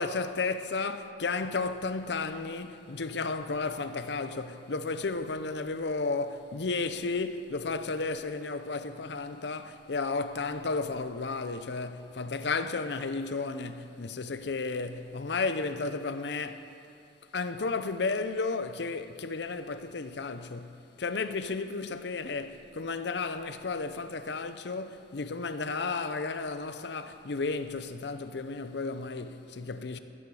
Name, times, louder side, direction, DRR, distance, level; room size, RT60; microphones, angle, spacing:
voice 1, 0.0-16.7 17.3-30.0, left 4 dB, 65° left, 0.6 m, -33 dB
15.0 x 13.0 x 4.8 m
head